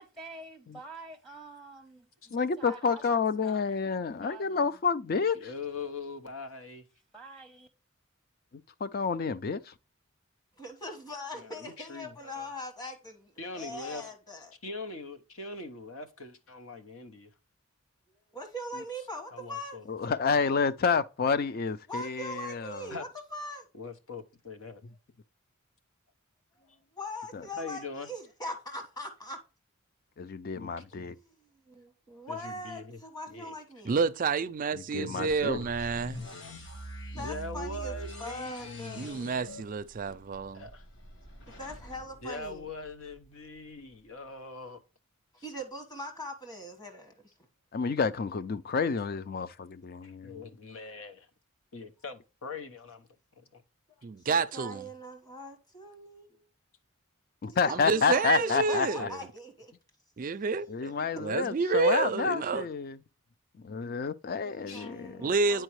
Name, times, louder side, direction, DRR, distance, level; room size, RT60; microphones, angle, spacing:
voice 1, 0.0-4.8 7.1-7.7, right 2 dB, ahead, 0.7 m, -48 dB
voice 2, 2.3-5.4 8.8-9.7 19.9-22.9 27.3-27.4 30.2-31.1 34.9-35.6 47.7-50.5 57.4-59.1 60.7-63.0 63.6-65.3, left 5 dB, 45° left, 0.4 m, -29 dB
voice 3, 5.3-6.8 11.3-12.5 13.4-14.0 14.6-17.3 18.7-18.8 19.3-20.2 22.9-23.1 23.7-24.8 26.6-26.8 27.6-28.1 30.5-30.8 32.3-33.0 33.3-33.5 34.9-35.7 37.1-39.4 40.5-40.9 42.2-44.8 50.0-51.3 51.7-53.1 53.4-53.6 64.7-64.9 65.5-65.6, left 3 dB, 75° left, 1.0 m, -42 dB
voice 4, 10.6-14.5 18.3-19.8 21.9-23.7 26.9-29.4 31.2-31.4 31.7-34.0 37.1-37.9 38.2-39.3 41.5-42.7 45.4-47.3 54.2-56.4 57.4-59.7 64.4-65.6, left 1 dB, 20° left, 1.3 m, -41 dB
voice 5, 33.9-36.2 39.0-40.7 54.0-54.9 57.7-59.2 60.2-62.7 65.2-65.6, right 4 dB, 40° right, 0.4 m, -29 dB
sound 1, 35.3-43.2, equal, 60° left, 1.3 m, -44 dB
8.9 x 4.6 x 3.1 m
head